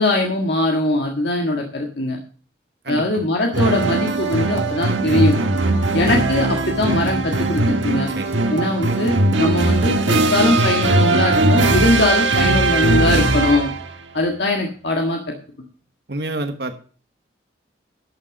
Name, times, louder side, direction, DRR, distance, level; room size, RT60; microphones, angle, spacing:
voice 1, 0.0-2.2 2.9-5.3 5.9-8.1 8.5-13.7 14.1-15.2, left 1 dB, 65° left, 1 dB, 1.7 m, -21 dB
voice 2, 2.8-3.3 6.1-6.3 8.1-8.5 16.1-16.7, right 2 dB, 60° right, 7 dB, 1.3 m, -29 dB
sound 1, 3.5-13.9, right 2 dB, 90° right, 1.6 m, -19 dB
12.0 x 6.6 x 6.0 m, 0.40 s
head